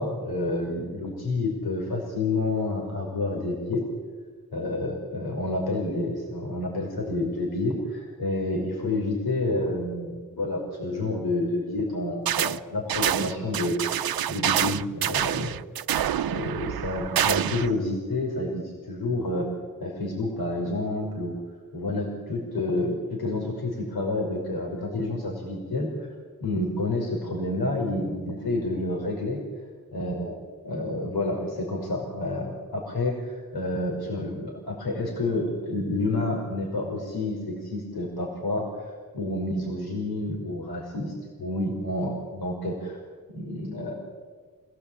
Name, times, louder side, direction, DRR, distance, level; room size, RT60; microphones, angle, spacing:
voice 1, 0.0-3.8 4.5-13.8 14.3-15.6 16.3-19.5 19.8-21.3 21.7-26.1 26.4-29.4 29.9-30.4 30.6-41.1 41.4-43.0 43.3-43.9, left 2 dB, 85° left, -1 dB, 5.5 m, -29 dB
sound 1, 12.3-12.6 12.9-17.7, right 10 dB, 75° right, 0.7 m, -26 dB
27.0 x 17.5 x 8.8 m, 1.6 s
wide cardioid pair, 140°, 37 cm